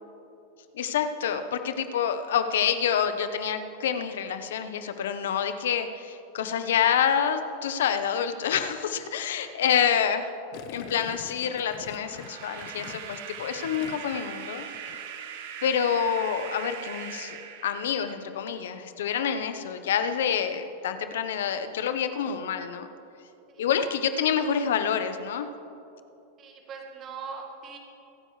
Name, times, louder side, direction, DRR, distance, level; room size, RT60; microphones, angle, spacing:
voice 1, 0.7-10.3 10.7-14.6 15.6-22.9 23.6-25.5, left 8 dB, 90° left, 9 dB, 0.8 m, -27 dB
Gurgling, 10.5-14.3 14.6-15.0, left 9 dB, 50° left, 0.6 m, -44 dB
sound 1, 11.4-18.4, right 8 dB, 60° right, 1.1 m, -41 dB
voice 2, 26.4-27.8, right 5 dB, 25° right, 1 dB, 1.8 m, -41 dB
24.5 x 9.3 x 3.2 m, 2.7 s
supercardioid pair, 160°, 0 cm